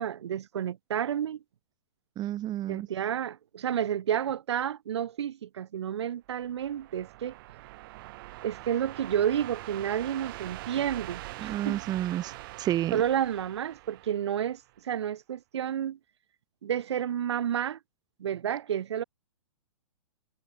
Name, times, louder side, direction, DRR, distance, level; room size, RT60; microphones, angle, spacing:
voice 1, 0.0-1.4 2.7-7.3 8.4-11.8 12.9-16.0 16.6-17.8 18.2-19.0, right 9 dB, 60° right, 7.1 m, -30 dB
voice 2, 2.2-2.9 11.4-12.3 12.6-13.0, right 13 dB, 25° right, 5.2 m, -30 dB
sound 1, 6.3-14.8, right 19 dB, 45° right, 5.5 m, -43 dB
figure-of-eight pair, 110°, 16 cm